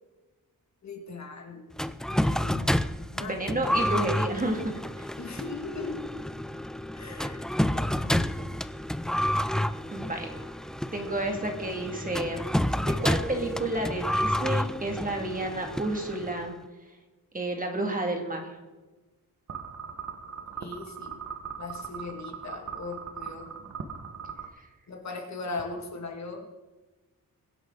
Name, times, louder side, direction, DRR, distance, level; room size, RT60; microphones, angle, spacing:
voice 1, 0.8-1.6 2.1-2.8 3.1-3.8 5.2-6.1 6.9-8.5 20.6-23.5 24.9-26.5, left 3 dB, 50° left, 3 dB, 2.3 m, -39 dB
sound 1, 1.8-16.5, equal, ahead, 0.4 m, -30 dB
voice 2, 3.2-5.1 9.9-10.3 10.9-12.5 12.8-16.5 17.3-18.6 24.6-24.7, right 1 dB, 20° right, 2 dB, 2.4 m, -31 dB
sound 2, 19.5-24.5, right 6 dB, 50° right, 1.5 m, -40 dB
23.0 x 10.5 x 4.0 m, 1.2 s
wide cardioid pair, 165°, 36 cm